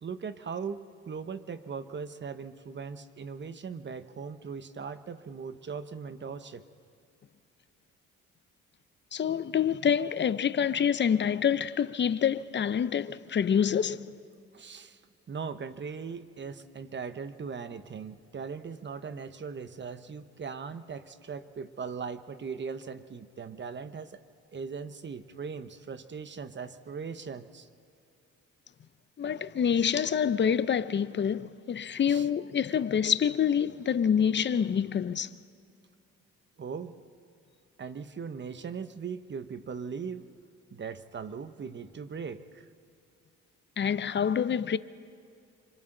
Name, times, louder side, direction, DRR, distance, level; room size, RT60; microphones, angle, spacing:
voice 1, 0.0-6.6 14.5-15.0 15.3-24.2 24.5-27.7 32.1-32.3 36.6-36.9 37.8-40.3 40.7-42.7, right 5 dB, 35° right, 1.0 m, -39 dB
voice 2, 9.1-14.1 29.2-35.3 43.8-44.8, left 8 dB, 35° left, 0.7 m, -27 dB
27.5 x 25.5 x 3.9 m
cardioid pair, 90°, 30 cm